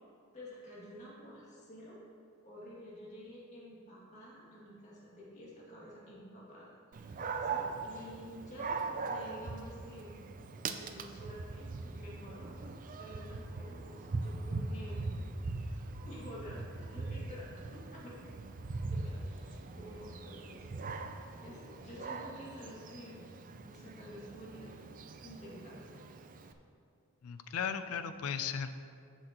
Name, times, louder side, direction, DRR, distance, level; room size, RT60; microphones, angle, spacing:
voice 1, 0.3-2.0 2.4-10.2 10.7-12.5 12.9-15.1 15.6-18.2 18.9-20.7 21.4-23.2 23.5-24.9 25.2-26.0, equal, 35° left, -7 dB, 2.2 m, -50 dB
Dog, 6.9-26.5, right 3 dB, 40° right, 0.4 m, -41 dB
voice 2, 27.2-28.7, left 7 dB, 90° left, 10 dB, 0.5 m, -36 dB
14.0 x 6.3 x 3.0 m, 2.4 s
head